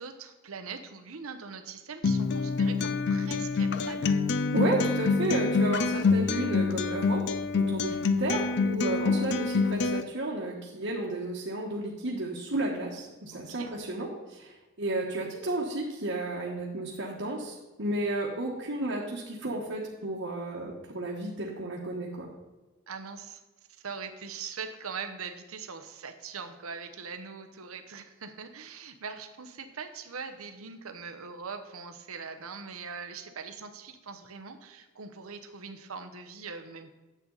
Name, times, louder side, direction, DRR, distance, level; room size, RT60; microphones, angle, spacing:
voice 1, 0.0-4.2 13.3-13.7 22.9-23.4 23.8-37.0, right 5 dB, 85° right, 7 dB, 0.9 m, -41 dB
Acoustic guitar, 2.0-10.0, left 4 dB, 55° left, 0.5 m, -26 dB
voice 2, 4.5-7.2 7.5-14.5 14.8-22.3, right 2 dB, 65° right, -4 dB, 1.4 m, -32 dB
10.0 x 8.1 x 4.0 m, 1.1 s
head